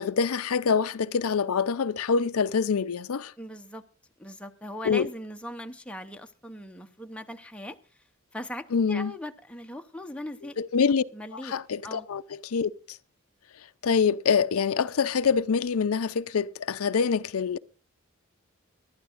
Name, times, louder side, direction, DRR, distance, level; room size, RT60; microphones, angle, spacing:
voice 1, 0.0-3.3 4.9-5.1 8.7-9.1 10.6-11.0 11.3-13.0 13.8-17.6, left 6 dB, 80° left, 0.5 m, -25 dB
voice 2, 3.4-3.8 4.2-7.8 8.3-10.6 11.1-11.5 11.8-12.1, left 1 dB, 5° left, 0.8 m, -39 dB
23.0 x 12.0 x 2.5 m
head